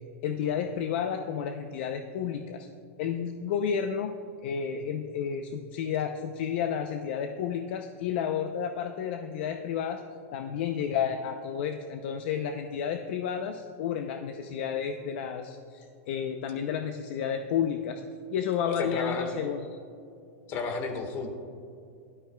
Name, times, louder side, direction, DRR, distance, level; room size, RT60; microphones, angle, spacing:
voice 1, 0.2-2.7 3.0-4.1 4.4-10.0 10.3-18.0 18.3-19.7, left 8 dB, 50° left, 6 dB, 0.6 m, -31 dB
voice 2, 18.7-19.3 20.5-21.3, left 4 dB, 35° left, 5 dB, 1.5 m, -32 dB
17.0 x 12.0 x 2.3 m, 2.6 s
supercardioid pair, 160°, 8 cm